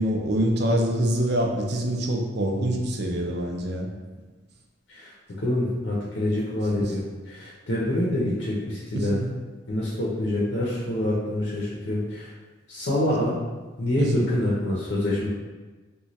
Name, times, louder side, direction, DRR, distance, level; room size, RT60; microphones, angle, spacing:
voice 1, 0.0-3.9 6.8-6.9 8.9-9.3 14.0-14.3, right 1 dB, 55° right, 1 dB, 0.5 m, -25 dB
voice 2, 5.4-9.2 9.7-12.3 12.7-13.4 13.8-15.3, left 1 dB, 65° left, -5 dB, 0.7 m, -26 dB
3.0 x 2.3 x 4.0 m, 1.3 s
head